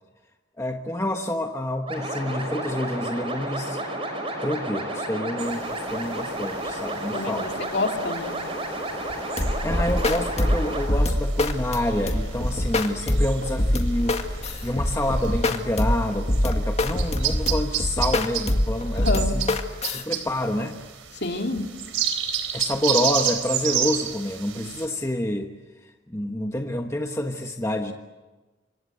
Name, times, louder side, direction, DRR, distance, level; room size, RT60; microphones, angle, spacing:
voice 1, 0.6-3.8 4.4-7.5 9.6-19.5 19.9-20.8 22.5-25.5 25.8-27.9, left 1 dB, 15° left, 3 dB, 1.3 m, -28 dB
sound 1, 1.9-10.9, right 1 dB, 25° right, 5.5 m, -31 dB
sound 2, 5.4-24.9, right 9 dB, 85° right, 3.8 m, -33 dB
voice 2, 7.1-8.3 18.9-19.3 21.1-21.6, left 2 dB, 55° left, 3 dB, 2.9 m, -28 dB
sound 3, 9.4-20.0, left 1 dB, 30° left, 1.9 m, -24 dB
27.5 x 25.0 x 8.0 m, 1.2 s
head